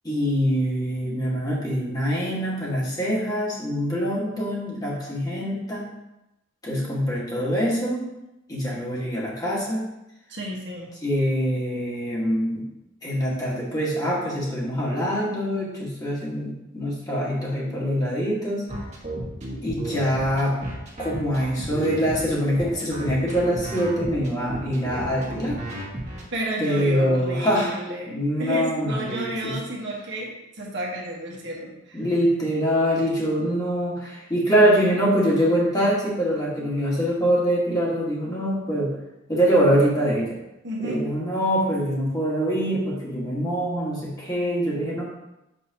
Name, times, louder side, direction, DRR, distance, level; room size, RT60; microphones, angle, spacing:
voice 1, 0.0-5.9 6.6-8.0 8.5-9.8 11.0-12.6 13.0-18.6 19.6-20.6 21.0-25.6 26.6-27.8 28.1-29.5 31.9-38.9 39.3-40.3 40.8-45.0, equal, 20° left, -6 dB, 1.7 m, -24 dB
voice 2, 10.3-10.9 26.3-32.1 40.6-41.1, equal, 60° right, -3 dB, 1.3 m, -31 dB
sound 1, 18.7-26.2, right 1 dB, 35° right, 1.5 m, -32 dB
6.1 x 5.6 x 2.9 m, 0.91 s
head